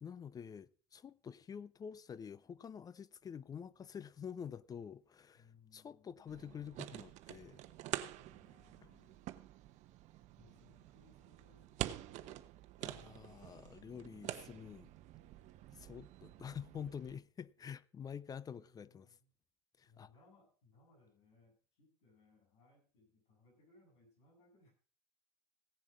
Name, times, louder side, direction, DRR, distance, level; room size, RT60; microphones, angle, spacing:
voice 1, 0.0-5.4 5.7-7.6 12.8-14.9 15.7-19.1 19.8-20.1, left 7 dB, 25° left, 0.5 m, -48 dB
voice 2, 5.4-6.5 8.2-9.2 10.4-12.3 18.5-19.3 19.9-24.7, left 3 dB, 75° left, 7.5 m, -68 dB
sound 1, 6.3-17.2, right 14 dB, 55° right, 1.0 m, -47 dB
16.5 x 7.2 x 5.2 m
hypercardioid pair, 90°, 15 cm